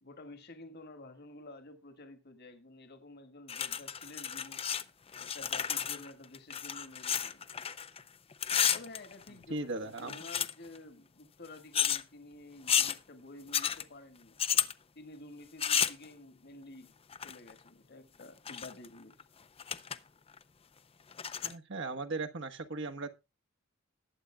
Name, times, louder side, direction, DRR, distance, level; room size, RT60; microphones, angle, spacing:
voice 1, 0.0-4.6 5.2-7.5 8.7-14.4 15.0-16.9 17.2-19.2, left 2 dB, 50° left, 1.8 m, -51 dB
sound 1, 3.5-4.8 5.1-8.0 8.3-9.5 10.0-10.8 11.7-12.0 12.7-13.0 13.5-13.8 14.4-14.7 15.6-16.0 17.1-17.5 18.2-18.9 19.2-19.3 19.6-20.0 20.3-20.4 21.1-21.5, left 9 dB, 25° left, 0.5 m, -32 dB
voice 2, 9.3-10.2 21.4-23.1, right 3 dB, 60° right, 1.2 m, -38 dB
20.0 x 8.0 x 2.2 m
head